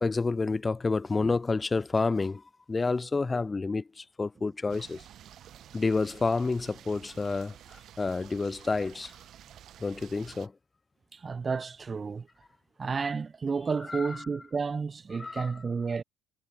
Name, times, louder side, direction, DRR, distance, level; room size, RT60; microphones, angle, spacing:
voice 1, 0.0-2.4 2.7-5.0 5.7-7.6 8.0-9.1 9.8-10.5 13.9-14.2 15.2-15.5, left 3 dB, 25° left, 0.9 m, -29 dB
sound 1, 4.7-10.5, right 11 dB, 55° right, 2.4 m, -51 dB
voice 2, 11.1-12.3 12.8-16.0, right 5 dB, 30° right, 0.5 m, -31 dB
hypercardioid pair, 70°, 0 cm